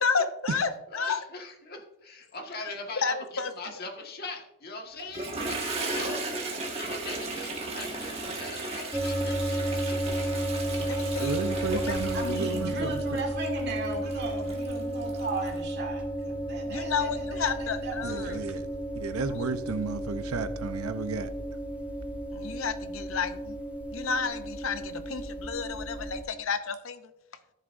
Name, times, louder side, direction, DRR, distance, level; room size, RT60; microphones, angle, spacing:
voice 1, 0.0-1.2 3.0-3.5 6.1-6.2 10.9-11.3 11.7-12.0 16.7-18.4 22.3-23.6 23.9-27.0, left 5 dB, 65° left, 0.6 m, -31 dB
voice 2, 0.9-6.3 6.6-10.4 10.7-11.1, left 2 dB, 45° left, 1.5 m, -41 dB
Toilet flush, 5.0-15.6, right 2 dB, 30° right, 1.5 m, -36 dB
sound 1, 8.9-26.2, right 1 dB, 5° right, 0.7 m, -33 dB
voice 3, 11.2-13.2 18.0-18.7 18.9-21.3, right 4 dB, 85° right, 0.7 m, -33 dB
voice 4, 12.1-18.5, right 2 dB, 50° right, 2.2 m, -37 dB
13.5 x 7.3 x 2.5 m
head